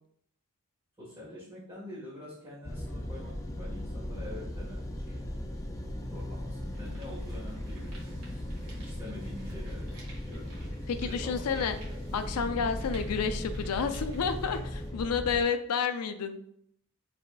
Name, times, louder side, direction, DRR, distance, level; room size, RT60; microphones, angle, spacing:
voice 1, 1.0-5.3 6.0-10.4 11.0-12.0, left 1 dB, 20° right, -12 dB, 1.6 m, -46 dB
sound 1, 2.6-15.4, left 1 dB, 15° left, 0.3 m, -37 dB
sound 2, 5.7-5.8 6.4-14.9, right 2 dB, 85° right, 1.5 m, -55 dB
voice 2, 10.9-11.8 12.1-16.4, left 6 dB, 85° left, 9 dB, 0.4 m, -30 dB
4.8 x 3.5 x 2.3 m, 0.69 s
head